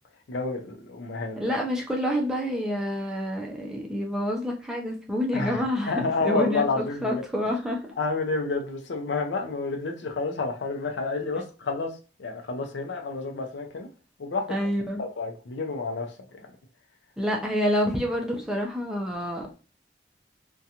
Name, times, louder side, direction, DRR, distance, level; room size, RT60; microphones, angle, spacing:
voice 1, 0.3-1.5 5.3-7.2 8.0-13.9 14.2-14.5 15.0-16.5, left 3 dB, 80° left, 0.5 m, -30 dB
voice 2, 1.4-6.6 7.0-7.8 14.5-15.0 17.2-19.5, equal, 5° right, 0.4 m, -28 dB
2.5 x 2.2 x 2.7 m
head